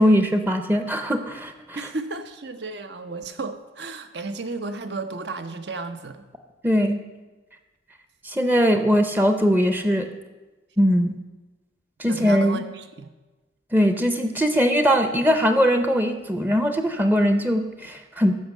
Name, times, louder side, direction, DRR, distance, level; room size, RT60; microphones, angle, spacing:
voice 1, 0.0-1.8 6.6-7.0 8.2-10.1 10.8-11.1 12.0-12.6 13.7-18.4, equal, 10° right, 7 dB, 0.6 m, -20 dB
voice 2, 1.8-6.3 12.1-13.1, right 3 dB, 65° right, 9 dB, 0.9 m, -33 dB
14.5 x 5.4 x 6.5 m, 1.2 s
head